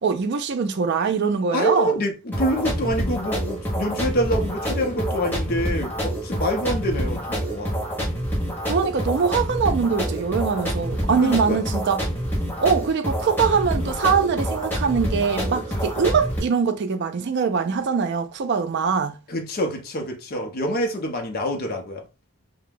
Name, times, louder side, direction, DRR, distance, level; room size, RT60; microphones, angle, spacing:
voice 1, 0.0-1.9 8.6-12.0 12.6-19.2, right 5 dB, 50° right, 0.4 m, -22 dB
voice 2, 1.5-7.8 11.2-11.7 19.3-22.1, equal, 40° left, 0.5 m, -26 dB
sound 1, 2.3-16.4, equal, 10° left, 0.7 m, -27 dB
2.3 x 2.1 x 3.2 m
head